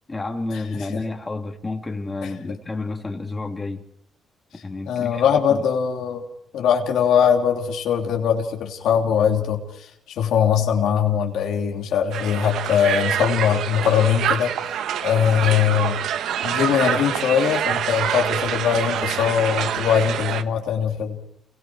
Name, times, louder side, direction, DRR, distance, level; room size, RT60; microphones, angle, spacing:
voice 1, 0.1-3.8 4.6-5.2 5.5-5.6, left 3 dB, 20° left, 3.1 m, -30 dB
voice 2, 4.8-6.2 6.5-9.9 10.2-14.5 15.0-16.0 16.4-21.2, left 8 dB, 80° left, 3.2 m, -21 dB
Crowd, 12.1-20.4, right 9 dB, 80° right, 1.1 m, -26 dB
29.0 x 22.5 x 4.7 m
cardioid pair, 90°, 0 cm